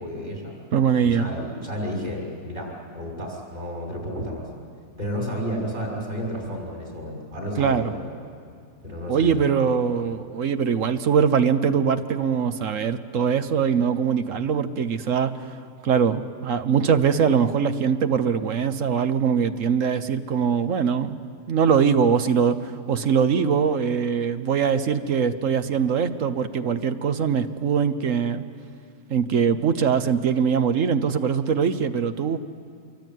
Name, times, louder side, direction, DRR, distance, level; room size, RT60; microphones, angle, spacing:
voice 1, 0.0-0.5 1.0-4.5 5.0-8.1 8.8-9.6, equal, 50° right, -1 dB, 6.7 m, -32 dB
voice 2, 0.7-1.3 7.6-7.9 9.1-15.3 15.8-21.2 21.5-28.4 29.1-32.4, right 6 dB, 70° right, 10 dB, 1.3 m, -22 dB
25.5 x 24.0 x 9.3 m, 2.3 s
omnidirectional pair, 1.4 m